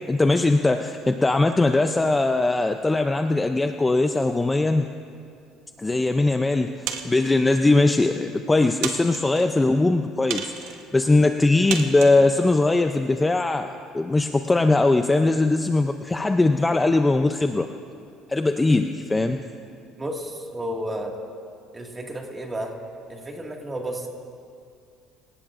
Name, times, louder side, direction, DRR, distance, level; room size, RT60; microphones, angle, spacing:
voice 1, 0.1-4.9 5.8-6.7 7.0-17.7 18.3-19.4, left 2 dB, 10° left, 6 dB, 0.5 m, -20 dB
sound 1, 6.9-7.4 8.1-8.2 8.8-9.5 10.3-10.8 11.7-12.2, right 8 dB, 85° right, 1.3 m, -32 dB
voice 2, 20.0-21.2 21.7-22.7 23.1-24.1, right 1 dB, 15° right, 1 dB, 1.9 m, -32 dB
27.5 x 18.0 x 2.5 m, 2.4 s
cardioid pair, 140°, 0 cm